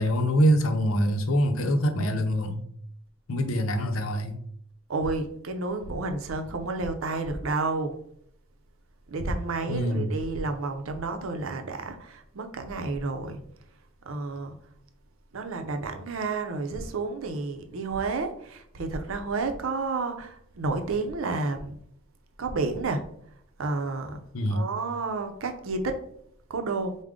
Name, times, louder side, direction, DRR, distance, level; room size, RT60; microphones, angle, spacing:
voice 1, 0.0-2.6 3.3-4.4 9.7-10.1 24.3-24.7, equal, 85° left, 0.6 m, -24 dB
voice 2, 4.9-8.0 9.1-13.4 14.0-14.5 15.3-21.8 22.4-23.0 23.6-24.2 24.5-26.0 26.5-27.0, right 3 dB, 80° right, 0.6 m, -30 dB
4.9 x 2.1 x 3.6 m
head